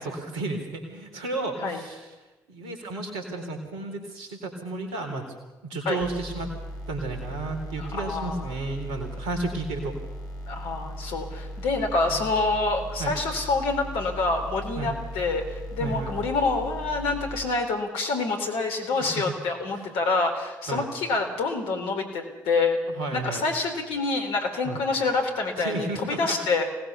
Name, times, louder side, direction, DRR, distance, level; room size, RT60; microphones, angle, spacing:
voice 1, 0.0-2.1 2.5-5.3 5.6-6.5 6.9-10.0 12.1-12.2 13.0-13.2 14.8-15.0 15.8-16.2 19.0-19.3 19.7-19.9 20.7-20.9 23.0-23.4 24.6-24.8 25.6-26.4, right 2 dB, 70° right, 5 dB, 3.9 m, -32 dB
sound 1, 6.0-17.4, equal, 35° left, 6.9 m, -38 dB
voice 2, 7.8-8.5 10.5-22.8 23.1-26.7, left 3 dB, 65° left, 4 dB, 3.9 m, -27 dB
25.0 x 19.0 x 7.0 m, 1.1 s
figure-of-eight pair, 40°, 10 cm